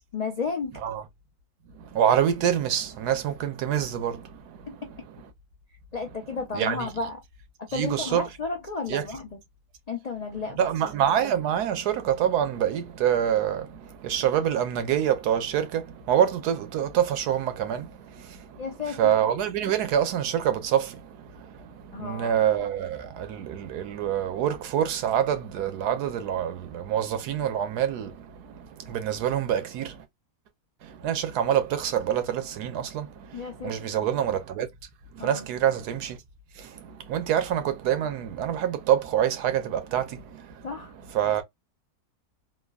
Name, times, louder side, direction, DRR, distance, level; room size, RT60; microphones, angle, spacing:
voice 1, 0.1-0.8 4.7-4.9 5.9-7.2 7.7-9.3 9.9-10.7 18.6-19.1 21.9-22.4 33.3-33.7 35.2-35.5 40.6-40.9, left 4 dB, 65° left, 0.4 m, -33 dB
voice 2, 1.7-4.8 6.5-6.9 7.7-8.3 8.9-9.1 10.6-30.0 30.8-34.7 35.1-36.2 36.6-41.4, right 10 dB, 90° right, 1.3 m, -26 dB
3.5 x 2.0 x 2.3 m
omnidirectional pair, 1.6 m